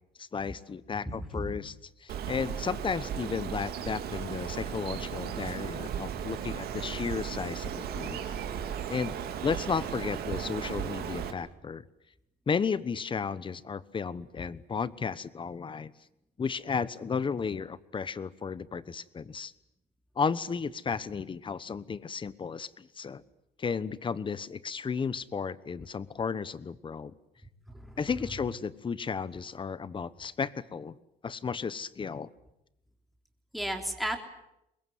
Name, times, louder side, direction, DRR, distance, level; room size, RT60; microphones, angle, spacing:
voice 1, 0.2-1.7 2.0-8.2 8.9-11.8 12.5-15.9 16.4-19.5 20.2-23.2 23.6-27.1 28.0-31.0 31.2-32.3, left 5 dB, 30° left, 17 dB, 1.1 m, -33 dB
voice 2, 1.0-1.6 27.7-28.0 33.5-34.2, equal, ahead, 3 dB, 3.6 m, -34 dB
Bird, 2.1-11.3, right 8 dB, 65° right, 2.7 m, -36 dB
23.5 x 20.5 x 9.4 m, 0.85 s
cardioid pair, 110°, 17 cm